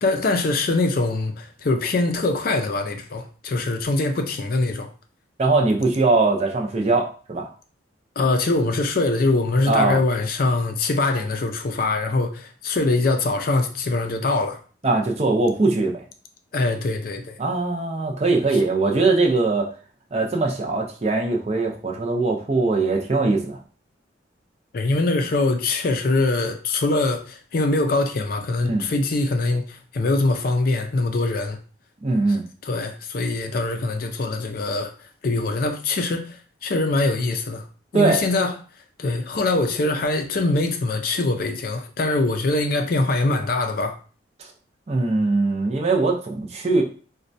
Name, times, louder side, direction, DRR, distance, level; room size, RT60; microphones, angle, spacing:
voice 1, 0.0-4.9 8.2-14.6 16.5-17.4 24.7-31.6 32.6-34.9 35.2-37.6 37.9-38.5 39.0-44.0, left 2 dB, 50° left, 0.4 m, -23 dB
voice 2, 5.4-7.5 9.7-10.0 14.8-16.0 17.4-19.7 20.1-23.6 28.6-28.8 32.0-32.4 37.9-38.2 44.4-44.5 44.9-46.8, right 3 dB, 35° right, 0.5 m, -21 dB
4.1 x 2.2 x 2.6 m
head